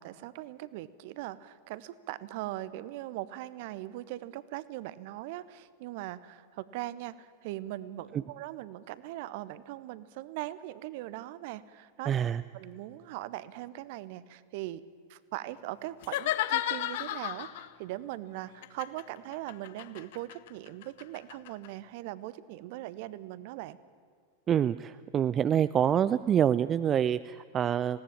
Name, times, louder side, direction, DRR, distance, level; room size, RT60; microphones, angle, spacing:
voice 1, 0.0-12.1 12.5-14.8 15.1-23.8, right 15 dB, 50° right, 17 dB, 0.9 m, -40 dB
voice 2, 12.1-12.4 24.5-28.0, right 9 dB, 25° right, 14 dB, 0.4 m, -26 dB
sound 1, 16.0-17.7 18.6-21.7, left 14 dB, 50° left, 0.8 m, -33 dB
20.0 x 17.0 x 8.9 m, 2.2 s
figure-of-eight pair, 90°, 0 cm